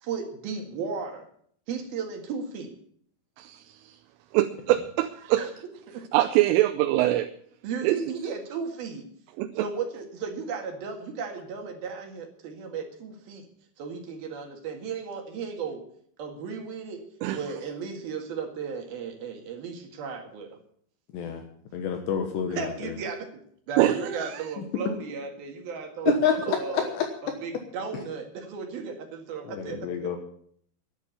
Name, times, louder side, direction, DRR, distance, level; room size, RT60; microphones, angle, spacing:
voice 1, 0.0-1.3 1.7-2.7 5.4-5.5 5.9-6.0 7.6-9.1 9.6-13.5 13.8-15.8 16.2-17.0 17.3-20.6 22.5-23.3 23.7-26.9 27.2-30.2, right 5 dB, 60° right, 3.3 m, -35 dB
voice 2, 3.4-4.0 4.3-5.5 6.1-7.3 7.8-8.0 9.4-9.7 17.2-17.4 23.8-24.4 26.1-26.2, right 15 dB, 85° right, 3.2 m, -24 dB
voice 3, 21.7-22.9 26.1-27.1 29.5-30.2, left 8 dB, 70° left, 3.2 m, -28 dB
11.0 x 10.5 x 8.4 m
omnidirectional pair, 5.6 m